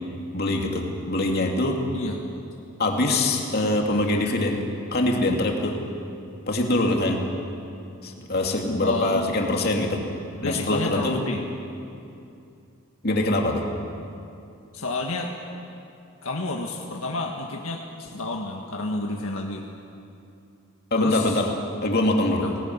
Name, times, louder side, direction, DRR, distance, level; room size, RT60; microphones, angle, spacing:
voice 1, 0.3-1.8 2.8-4.6 4.9-5.8 6.5-7.2 8.0-10.0 10.4-11.2 13.0-13.6 20.9-21.5 21.8-22.4, left 2 dB, 45° left, 1 dB, 2.6 m, -23 dB
voice 2, 8.8-9.3 10.4-11.4 14.7-15.3 16.2-19.6 21.0-21.4 22.4-22.6, left 2 dB, 70° left, 1 dB, 1.7 m, -30 dB
19.0 x 19.0 x 9.6 m, 2.6 s
head